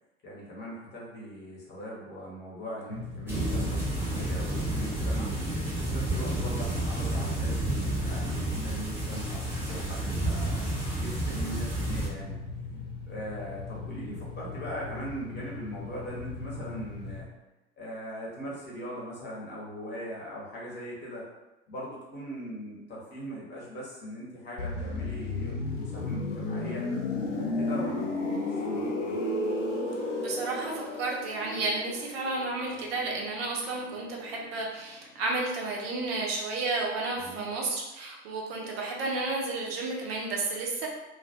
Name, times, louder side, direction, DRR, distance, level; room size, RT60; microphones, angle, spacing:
voice 1, 0.2-5.3 5.7-12.4 13.1-17.3 17.8-21.3 21.7-26.9 27.3-28.1 28.5-29.1 37.2-37.5, equal, 30° left, -5 dB, 0.9 m, -40 dB
sound 1, 2.9-17.2, left 4 dB, 90° right, 0.8 m, -40 dB
sound 2, 3.3-12.1, right 1 dB, 5° right, 0.7 m, -31 dB
sound 3, 24.6-34.2 34.5-34.7, left 2 dB, 80° left, 0.5 m, -33 dB
voice 2, 30.2-40.9, right 3 dB, 55° right, -1 dB, 0.6 m, -32 dB
2.2 x 2.1 x 2.7 m, 1.0 s
figure-of-eight pair, 75°, 36 cm